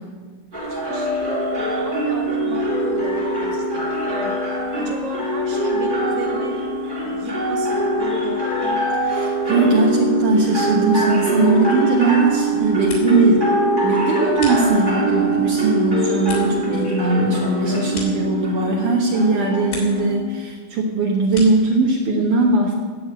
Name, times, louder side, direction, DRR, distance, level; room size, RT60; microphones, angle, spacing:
sound 1, 0.5-20.1, right 2 dB, 20° right, 1.3 m, -23 dB
voice 1, 0.5-6.7 7.0-8.8, right 3 dB, 60° right, 2 dB, 3.2 m, -34 dB
sound 2, 0.9-20.5, left 16 dB, 80° left, 4.0 m, -32 dB
voice 2, 9.1-13.4 13.8-22.7, right 3 dB, 75° right, -2 dB, 1.8 m, -19 dB
sound 3, 12.6-13.4 13.7-15.1 15.6-18.8 19.2-20.1 20.4-21.8, left 3 dB, 60° left, 5.1 m, -38 dB
17.0 x 6.9 x 8.5 m, 1.5 s
omnidirectional pair, 5.9 m